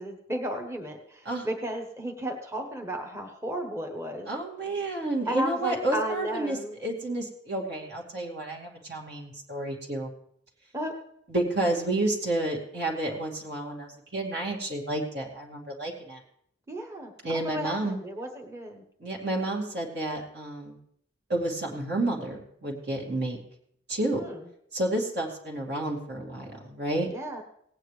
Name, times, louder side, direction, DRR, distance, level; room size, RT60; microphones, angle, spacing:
voice 1, 0.0-4.3 5.2-6.8 10.7-11.0 16.7-18.8 24.2-24.5 27.1-27.4, right 1 dB, 15° right, 2 dB, 1.1 m, -34 dB
voice 2, 4.3-10.1 11.3-16.2 17.2-18.0 19.0-20.8 21.3-23.4 23.9-24.2 24.7-27.1, right 1 dB, 60° right, -1 dB, 2.4 m, -30 dB
18.0 x 9.1 x 3.3 m, 0.69 s
head